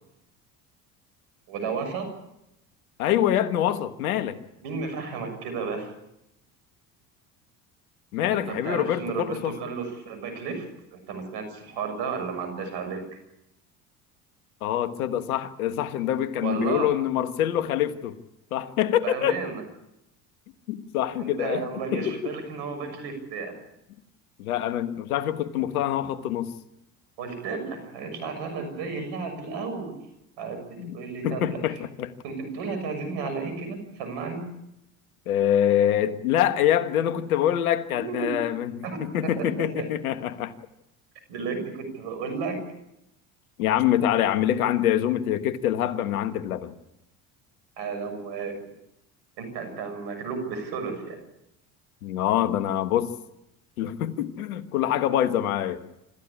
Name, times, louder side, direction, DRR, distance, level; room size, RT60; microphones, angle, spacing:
voice 1, 1.5-2.1 4.6-5.9 8.3-10.6 10.9-13.0 16.4-16.9 19.0-19.6 21.2-23.6 27.2-29.9 30.4-30.6 30.9-31.6 32.2-34.4 38.0-38.4 38.8-39.9 41.3-42.6 47.8-48.6 49.4-51.2, right 5 dB, 70° right, 8 dB, 6.7 m, -33 dB
voice 2, 3.0-4.4 8.1-9.5 14.6-18.2 18.5-19.4 20.7-21.6 21.9-22.3 24.4-26.5 30.8-31.0 31.2-32.1 35.3-40.5 43.6-46.7 52.0-53.1 53.8-55.8, left 11 dB, 85° left, 11 dB, 1.5 m, -25 dB
26.0 x 14.0 x 8.4 m, 0.86 s
hypercardioid pair, 75°, 43 cm